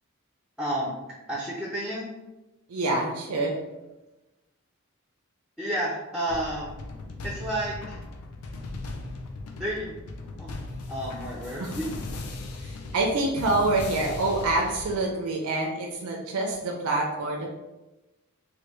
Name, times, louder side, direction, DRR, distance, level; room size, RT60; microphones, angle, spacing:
voice 1, 0.6-0.9 1.3-2.1 5.6-6.8 7.2-8.0 9.6-9.9 10.4-10.6 10.9-11.9, right 1 dB, ahead, -4 dB, 0.4 m, -31 dB
voice 2, 2.7-3.6 11.6-11.7 12.6-17.5, right 2 dB, 80° right, 0 dB, 0.5 m, -26 dB
sound 1, 6.3-15.0, left 2 dB, 80° left, 0.5 m, -38 dB
3.2 x 2.2 x 3.0 m, 1.0 s
head